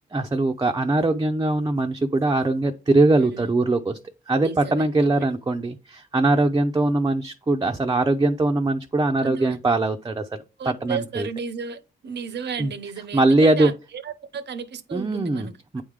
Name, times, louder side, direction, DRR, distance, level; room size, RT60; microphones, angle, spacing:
voice 1, 0.1-4.0 4.3-11.3 12.6-12.7 13.1-13.7 14.9-15.5 15.7-15.8, right 2 dB, 20° right, 0.5 m, -21 dB
voice 2, 3.2-3.5 4.4-4.9 5.2-5.3 9.2-9.6 10.6-15.6, right 6 dB, 70° right, 0.7 m, -34 dB
8.6 x 3.6 x 3.3 m
cardioid pair, 70°, 18 cm